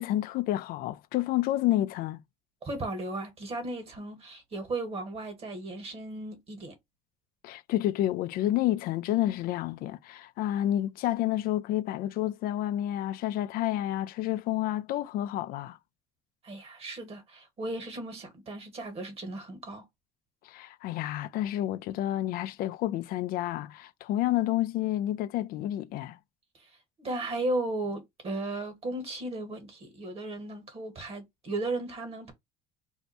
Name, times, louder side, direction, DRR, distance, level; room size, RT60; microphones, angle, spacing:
voice 1, 0.0-2.2 7.4-15.8 20.4-26.2, left 13 dB, 65° left, 0.4 m, -29 dB
voice 2, 2.6-6.8 16.4-19.8 26.6-32.3, right 2 dB, 40° right, 1.5 m, -35 dB
2.7 x 2.2 x 4.0 m
cardioid pair, 100°, 16 cm